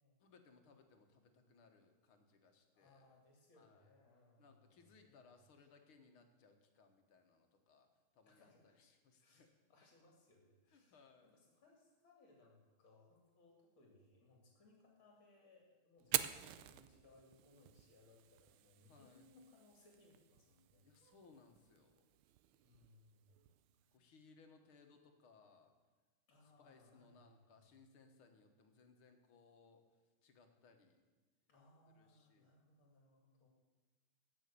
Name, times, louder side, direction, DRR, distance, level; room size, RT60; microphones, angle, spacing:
voice 1, 0.2-3.1 3.5-3.9 4.4-7.9 8.1-9.5 10.7-11.3 18.9-19.3 20.8-22.0 23.9-25.7 26.4-29.8 30.2-31.0 31.9-32.5, left 4 dB, 85° left, 5 dB, 2.3 m, -66 dB
voice 2, 2.7-5.4 8.2-8.8 9.2-20.9 22.5-24.1 26.3-27.7 31.5-33.5, left 2 dB, 70° left, 0 dB, 3.2 m, -68 dB
Fire, 16.0-24.0, right 14 dB, 85° right, 1.5 m, -47 dB
16.0 x 6.4 x 8.4 m, 1.3 s
omnidirectional pair, 2.3 m